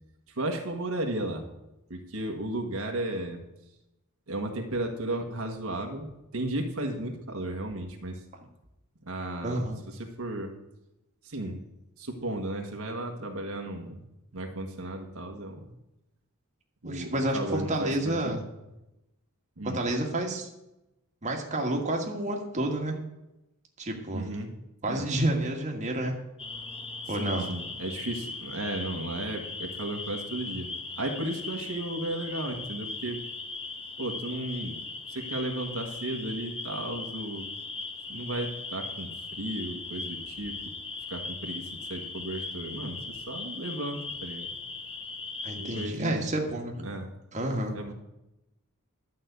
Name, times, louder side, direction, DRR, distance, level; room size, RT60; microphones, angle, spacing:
voice 1, 0.3-1.5 1.9-3.4 4.3-8.2 9.0-10.6 11.2-11.6 12.0-14.0 14.3-15.7 16.8-18.4 19.6-19.8 24.1-24.5 24.9-25.1 27.2-30.7 30.9-33.2 34.0-34.8 35.1-37.5 38.1-40.7 41.1-44.5 45.5-46.3 46.8-47.1 47.7-47.9, right 1 dB, 70° right, 3 dB, 1.5 m, -34 dB
voice 2, 9.4-9.7 16.8-18.4 19.7-20.5 21.2-23.0 23.8-24.3 24.8-26.1 27.1-27.4 45.4-46.9 47.3-47.7, right 1 dB, 35° right, 1 dB, 1.7 m, -29 dB
sound 1, 26.4-45.9, left 3 dB, 25° left, 1.0 m, -39 dB
12.0 x 5.4 x 8.1 m, 0.93 s
head